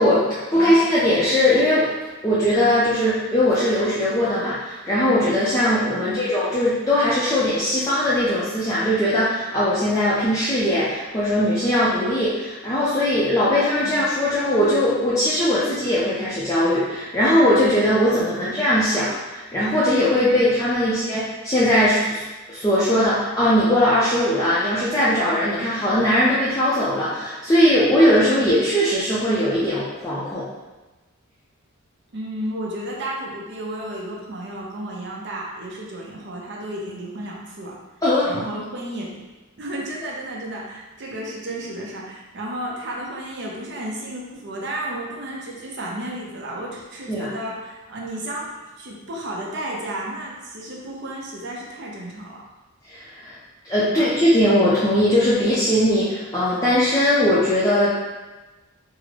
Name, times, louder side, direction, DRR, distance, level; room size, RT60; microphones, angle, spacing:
voice 1, 0.0-1.9 2.2-30.5 38.0-38.3 47.1-47.3 52.9-53.4 53.6-57.9, left 1 dB, 15° left, -10 dB, 0.4 m, -20 dB
voice 2, 32.1-37.8 38.2-39.2 39.6-52.4 53.8-54.1, right 1 dB, 55° right, -3 dB, 0.5 m, -33 dB
3.6 x 2.0 x 3.2 m, 1.2 s
head